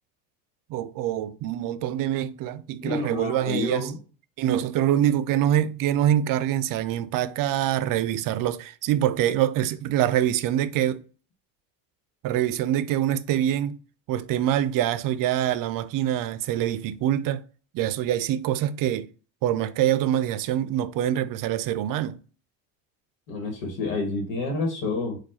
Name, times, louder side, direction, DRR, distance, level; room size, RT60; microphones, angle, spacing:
voice 1, 0.7-3.9 4.4-11.0 12.2-13.8 14.1-17.4 17.7-19.1 19.4-22.2, right 11 dB, 55° right, 0.5 m, -25 dB
voice 2, 2.8-4.0 23.3-25.2, left 3 dB, 90° left, 1.3 m, -29 dB
4.4 x 2.4 x 4.2 m
supercardioid pair, 95°, 40 cm